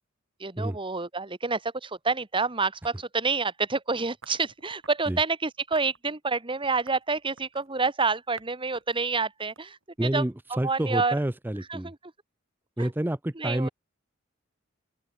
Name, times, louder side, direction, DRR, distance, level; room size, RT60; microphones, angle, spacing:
voice 1, 0.4-10.2 10.6-11.2 11.7-12.1 12.8-12.9 13.4-13.7, right 4 dB, 25° right, 1.7 m, -28 dB
sound 1, 4.2-5.1 5.7-6.0 6.6-7.8 8.4-8.5 8.7-10.2, right 4 dB, 75° right, 3.9 m, -51 dB
voice 2, 10.0-11.9 12.8-13.7, right 1 dB, 10° right, 0.5 m, -28 dB
open air
head